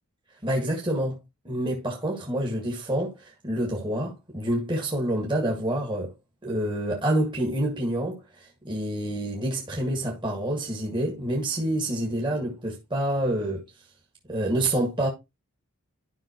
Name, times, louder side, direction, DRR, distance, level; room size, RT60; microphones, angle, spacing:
voice 1, 0.4-1.2 1.4-6.1 6.4-13.6 14.3-15.1, right 1 dB, 20° right, 1.8 m, -27 dB
12.5 x 5.6 x 3.0 m
head